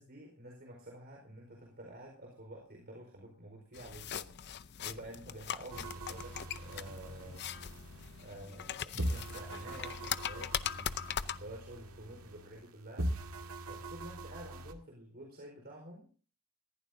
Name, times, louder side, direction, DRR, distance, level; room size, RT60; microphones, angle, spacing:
voice 1, 0.0-7.4 8.2-13.1 13.7-16.1, right 1 dB, 45° right, 0 dB, 4.5 m, -50 dB
sound 1, 3.7-11.4, left 9 dB, 50° left, 0.6 m, -40 dB
sound 2, 5.7-8.7 9.0-12.7 13.0-14.7, right 1 dB, 80° right, 1.9 m, -42 dB
20.5 x 15.0 x 2.7 m, 0.39 s
head